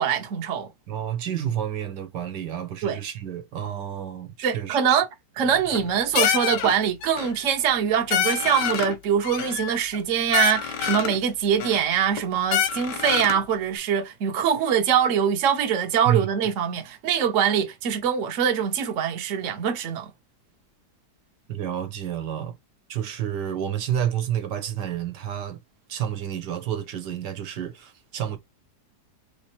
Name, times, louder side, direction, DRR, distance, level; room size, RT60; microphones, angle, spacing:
voice 1, 0.0-0.7 2.8-3.0 4.4-5.1 5.4-20.1, right 8 dB, 60° right, 1.0 m, -23 dB
voice 2, 0.9-5.0 16.0-16.3 21.5-22.5 22.9-25.6 25.9-28.4, right 10 dB, 85° right, 1.4 m, -29 dB
sound 1, 5.5-5.9 6.2-6.7 7.0-7.4 7.7-7.8 8.1-9.0 9.2-10.0 10.3-11.2 11.6-12.2 12.5-13.4, left 9 dB, 90° left, 1.4 m, -26 dB
3.3 x 3.1 x 2.9 m
omnidirectional pair, 1.8 m